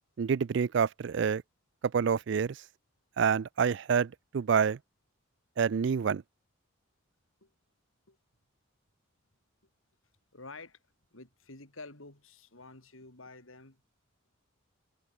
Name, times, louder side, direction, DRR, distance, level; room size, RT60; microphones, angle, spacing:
voice 1, 0.2-1.4 1.9-2.6 3.2-4.8 5.6-6.2, right 6 dB, 60° right, 0.4 m, -27 dB
voice 2, 10.3-10.8 11.1-13.8, left 3 dB, 85° left, 4.5 m, -49 dB
head